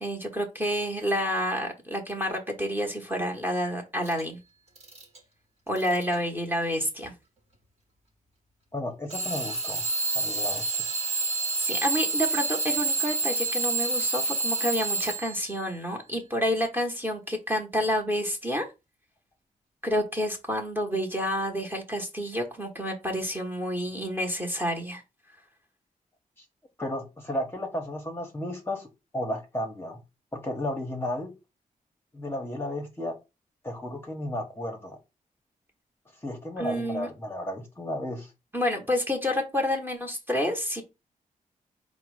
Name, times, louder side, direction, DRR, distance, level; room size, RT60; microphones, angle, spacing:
voice 1, 0.0-4.4 5.7-7.1 11.6-18.6 19.8-25.0 36.6-37.1 38.5-40.8, equal, 15° right, 1 dB, 1.0 m, -29 dB
Alarm / Clock, 4.1-4.2 4.8-5.2 5.8-6.2 7.0-7.1 9.1-15.5, right 3 dB, 50° right, 1.3 m, -28 dB
voice 2, 8.7-9.8 10.1-10.8 26.4-26.5 26.8-28.9 29.1-30.0 30.3-31.3 32.1-33.2 33.6-35.0 36.2-38.3, left 1 dB, 15° left, 1 dB, 0.9 m, -33 dB
4.6 x 2.1 x 4.6 m, 0.26 s
wide cardioid pair, 120°, 14 cm